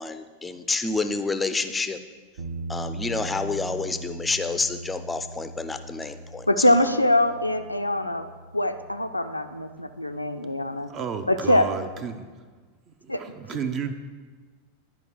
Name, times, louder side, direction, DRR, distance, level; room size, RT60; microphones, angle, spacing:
voice 1, 0.0-2.0 2.7-6.5, left 3 dB, 10° left, 10 dB, 0.5 m, -28 dB
sound 1, 2.4-11.3, right 2 dB, 55° right, 0.9 m, -40 dB
voice 2, 6.5-8.3 8.5-10.9 11.3-11.7 13.1-13.2, left 1 dB, 85° left, 8 dB, 0.4 m, -23 dB
voice 3, 10.9-12.2 12.9-13.9, right 6 dB, 30° right, 9 dB, 0.6 m, -32 dB
10.5 x 5.1 x 4.6 m, 1.4 s
figure-of-eight pair, 90°, 0 cm